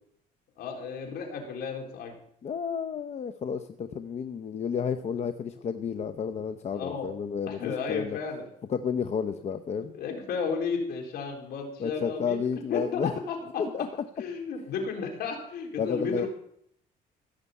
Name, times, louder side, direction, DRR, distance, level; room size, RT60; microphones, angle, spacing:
voice 1, 0.6-2.1 6.7-7.1 7.5-8.5 9.9-12.4 12.7-13.0 13.3-13.6 14.2-16.3, left 5 dB, 70° left, 2 dB, 4.0 m, -33 dB
voice 2, 2.4-8.2 8.7-9.9 11.8-13.2 13.6-13.9 15.8-16.3, left 7 dB, 40° left, 9 dB, 0.8 m, -31 dB
16.5 x 6.7 x 8.4 m, 0.70 s
cardioid pair, 110°, 17 cm